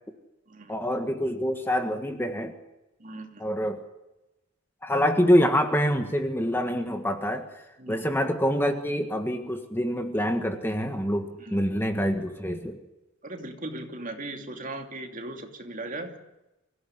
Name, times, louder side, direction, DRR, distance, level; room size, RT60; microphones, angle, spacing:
voice 1, 0.7-2.5 3.4-3.8 4.8-7.4 7.9-12.8, equal, 10° left, 6 dB, 1.7 m, -26 dB
voice 2, 3.0-3.5 7.8-8.1 11.4-11.6 13.2-16.1, right 2 dB, 40° right, 4 dB, 2.7 m, -38 dB
25.0 x 16.5 x 10.0 m, 0.98 s
head